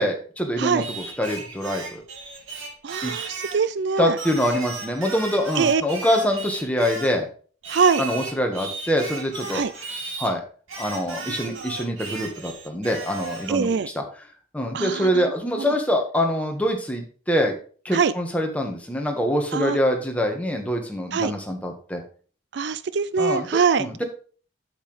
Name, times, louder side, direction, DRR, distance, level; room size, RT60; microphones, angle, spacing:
voice 1, 0.0-2.0 3.0-3.1 4.0-7.3 8.0-9.6 10.2-10.4 10.8-14.0 14.5-17.5 17.8-22.0 23.2-23.5 23.8-24.0, equal, 5° left, 2 dB, 1.5 m, -25 dB
Singing, 0.8-3.7 4.2-7.2 7.6-10.3 10.7-13.6, right 3 dB, 90° right, 2.7 m, -35 dB
voice 2, 2.8-4.2 5.6-5.8 7.7-8.0 9.5-9.7 11.4-11.6 13.5-13.9 14.7-15.2 17.9-18.1 19.5-19.8 21.1-21.3 22.5-24.0, right 5 dB, 60° right, 15 dB, 0.4 m, -23 dB
8.0 x 8.0 x 3.3 m, 0.41 s
head